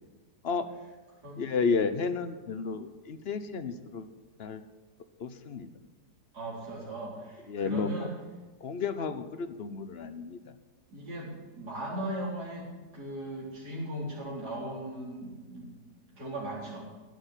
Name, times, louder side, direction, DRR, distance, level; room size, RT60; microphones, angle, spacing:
voice 1, 1.4-4.1 4.4-4.6 5.2-5.7 7.5-8.1 8.6-10.4, left 5 dB, 45° left, 10 dB, 1.0 m, -32 dB
voice 2, 6.3-8.1 10.9-15.7 16.1-16.8, right 1 dB, 75° right, -4 dB, 4.8 m, -38 dB
17.0 x 6.6 x 9.9 m, 1.3 s
omnidirectional pair, 1.7 m